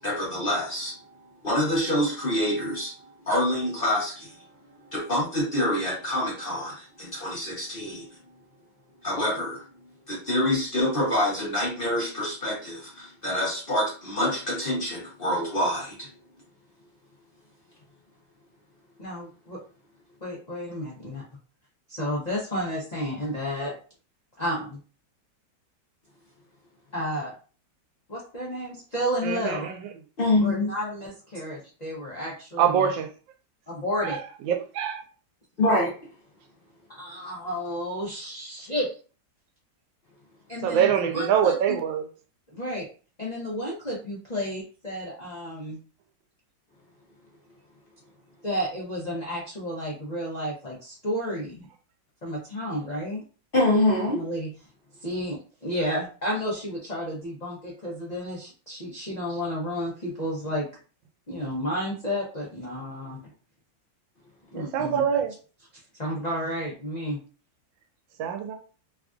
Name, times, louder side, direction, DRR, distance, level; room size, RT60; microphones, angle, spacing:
voice 1, 0.0-0.9 1.4-4.3 4.9-8.1 9.0-9.6 10.1-16.1 30.2-30.7 35.6-35.9 53.5-54.2, left 1 dB, 40° left, -4 dB, 0.8 m, -26 dB
voice 2, 19.0-19.6 20.2-21.2 21.9-23.8 24.4-24.8 26.9-27.3 28.1-29.7 30.4-32.9 33.7-34.2 36.9-38.9 40.5-41.8 42.5-42.9 43.2-45.8 48.4-51.6 52.2-53.2 54.1-54.5 55.0-60.7 61.3-63.2 64.5-65.0 65.7-67.2, equal, 65° left, -5 dB, 0.4 m, -31 dB
voice 3, 29.2-29.6 32.6-33.1 34.5-35.0 40.6-42.0 64.5-65.3 68.2-68.5, right 8 dB, 90° right, 6 dB, 1.3 m, -24 dB
3.3 x 2.4 x 2.4 m, 0.37 s
omnidirectional pair, 2.0 m